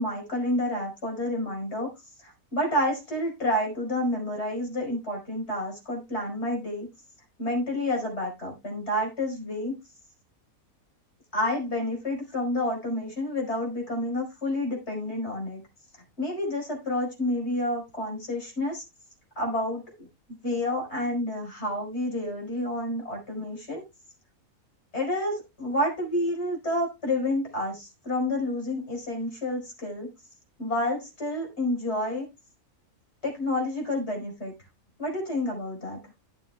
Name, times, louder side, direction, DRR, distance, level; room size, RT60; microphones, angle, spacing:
voice 1, 0.0-1.9 2.2-6.9 7.4-9.7 11.3-15.6 16.2-18.8 19.4-19.8 20.4-23.8 24.9-30.1 30.6-32.3 33.2-34.5 35.0-36.0, left 1 dB, 45° left, 0 dB, 5.2 m, -29 dB
17.0 x 7.2 x 2.3 m, 0.24 s
omnidirectional pair, 1.5 m